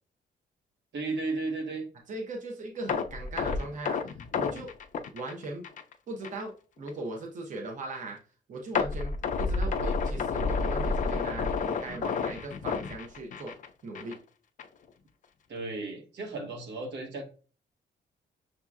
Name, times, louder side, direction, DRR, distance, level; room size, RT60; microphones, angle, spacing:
voice 1, 0.9-1.9 9.7-9.8 15.5-17.2, right 3 dB, 75° right, 3 dB, 1.2 m, -34 dB
voice 2, 2.1-4.7 5.1-5.7 6.1-8.2 8.5-13.6 13.8-14.2, right 2 dB, 45° right, 1 dB, 0.8 m, -39 dB
sound 1, 2.9-5.9 6.2-6.4 6.9-7.0 8.7-13.7 13.9-14.2 14.6-14.7, left 4 dB, 45° left, 0.4 m, -30 dB
6.2 x 2.8 x 2.3 m, 0.38 s
cardioid pair, 145°, 19 cm